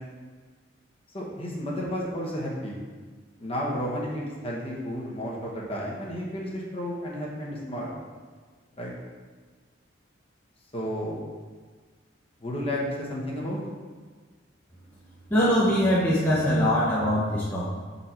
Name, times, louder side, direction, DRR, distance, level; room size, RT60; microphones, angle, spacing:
voice 1, 1.1-2.8 3.4-7.9 8.8-8.9 10.7-11.2 12.4-13.6, equal, 30° left, -3 dB, 1.1 m, -32 dB
voice 2, 15.3-17.7, equal, 10° left, -8 dB, 0.8 m, -22 dB
6.3 x 4.1 x 4.4 m, 1.5 s
head